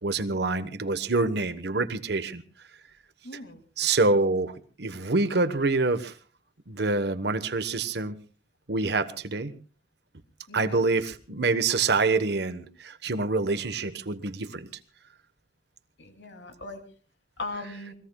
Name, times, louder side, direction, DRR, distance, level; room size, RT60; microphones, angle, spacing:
voice 1, 0.0-2.4 3.8-6.1 6.7-8.2 8.7-9.5 10.5-14.7, right 3 dB, 65° right, 12 dB, 1.2 m, -26 dB
voice 2, 3.2-3.6 10.5-10.9 16.0-16.8 17.4-17.9, left 2 dB, 80° left, 5 dB, 2.8 m, -39 dB
28.5 x 20.5 x 2.3 m, 0.37 s
head